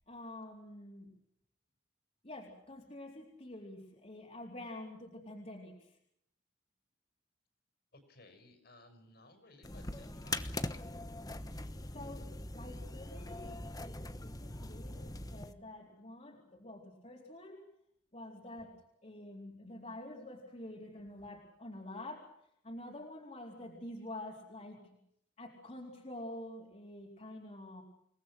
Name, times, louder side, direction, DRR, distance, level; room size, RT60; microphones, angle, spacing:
voice 1, 0.1-1.1 2.2-5.9 11.4-17.7 18.1-22.3 22.6-24.8 25.4-27.8, left 1 dB, 35° left, -1 dB, 4.1 m, -48 dB
voice 2, 7.9-10.6, left 2 dB, 55° left, 7 dB, 6.1 m, -59 dB
sound 1, 9.6-15.5, left 2 dB, 20° left, 1.2 m, -42 dB
29.0 x 19.5 x 6.3 m, 0.73 s
head